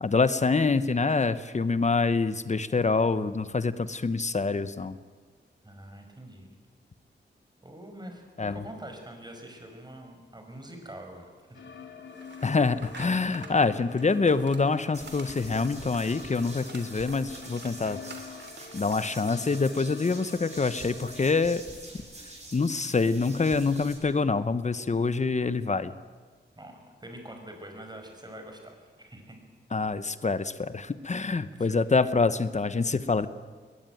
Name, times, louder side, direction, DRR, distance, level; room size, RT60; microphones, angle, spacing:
voice 1, 0.0-5.0 8.4-8.6 12.4-18.0 18.7-21.6 22.5-25.9 29.7-33.3, left 4 dB, 40° left, 13 dB, 1.0 m, -26 dB
voice 2, 5.6-6.6 7.6-11.6 26.5-29.4 31.5-31.7, right 1 dB, 20° right, 4 dB, 5.7 m, -45 dB
sound 1, 11.5-21.3, left 6 dB, 90° left, 3.0 m, -46 dB
sound 2, 12.1-20.6, right 4 dB, 70° right, 3.2 m, -50 dB
sound 3, 14.9-23.9, right 2 dB, 35° right, 7.4 m, -46 dB
21.5 x 20.5 x 9.2 m, 1.5 s
wide cardioid pair, 90°, 19 cm